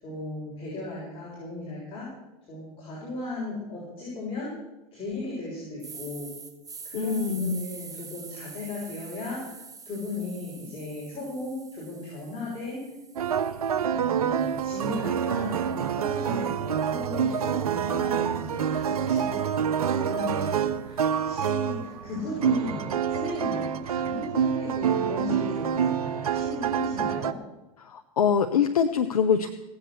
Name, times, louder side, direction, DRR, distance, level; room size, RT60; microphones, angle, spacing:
voice 1, 0.0-2.1 2.5-4.5 4.9-6.3 6.8-9.5 9.8-12.8 13.9-19.5 20.0-27.4, left 2 dB, 30° left, -7 dB, 6.5 m, -36 dB
sound 1, 5.8-13.9 14.4-18.6, right 5 dB, 20° right, 1.5 m, -47 dB
voice 2, 6.9-7.6 27.8-29.5, left 7 dB, 85° left, 7 dB, 0.8 m, -24 dB
sound 2, 13.2-27.3, right 8 dB, 90° right, 0.7 m, -27 dB
17.5 x 8.1 x 6.7 m, 0.96 s
hypercardioid pair, 100°, 19 cm